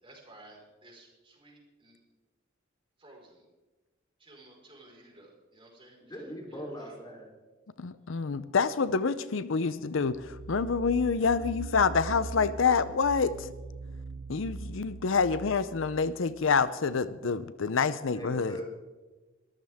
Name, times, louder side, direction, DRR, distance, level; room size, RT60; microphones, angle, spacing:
voice 1, 0.0-2.0 3.0-3.4 4.2-6.0 6.5-6.6, right 2 dB, 25° right, -1 dB, 4.8 m, -54 dB
voice 2, 6.0-7.3 18.1-18.6, equal, 20° left, 0 dB, 3.4 m, -40 dB
voice 3, 7.8-13.5 14.3-18.6, left 5 dB, 70° left, 14 dB, 0.6 m, -27 dB
sound 1, 10.0-16.7, right 2 dB, 90° right, 0.8 m, -42 dB
22.5 x 14.0 x 3.6 m, 1.2 s
head